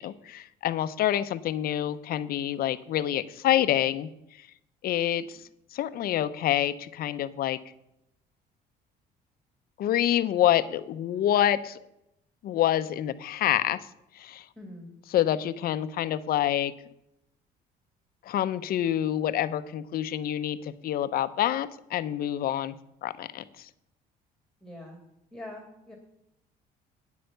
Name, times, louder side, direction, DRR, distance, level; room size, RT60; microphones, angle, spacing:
voice 1, 0.0-4.1 4.4-4.5 4.8-5.4 5.7-7.6 9.8-11.8 12.4-13.8 14.1-14.5 15.1-16.7 18.2-22.7 23.0-23.7, left 11 dB, 60° left, 13 dB, 0.7 m, -27 dB
voice 2, 14.6-14.9 24.6-25.0 25.3-26.0, left 1 dB, 5° left, 2 dB, 2.1 m, -43 dB
9.4 x 7.8 x 6.7 m, 0.81 s
cardioid pair, 110°, 17 cm